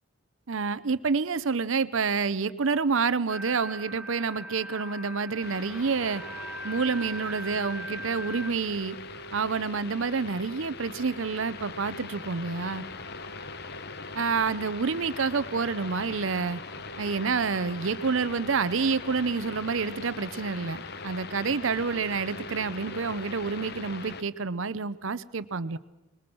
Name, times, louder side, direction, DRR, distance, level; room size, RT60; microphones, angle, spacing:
voice 1, 0.5-6.2 6.6-9.0 9.3-12.8 14.1-16.6 17.0-25.8, right 5 dB, 70° right, 16 dB, 0.7 m, -28 dB
sound 1, 3.3-8.5, right 1 dB, 5° right, 2.0 m, -40 dB
sound 2, 5.4-24.2, left 3 dB, 50° left, 0.9 m, -41 dB
26.0 x 21.0 x 6.1 m, 1.0 s
head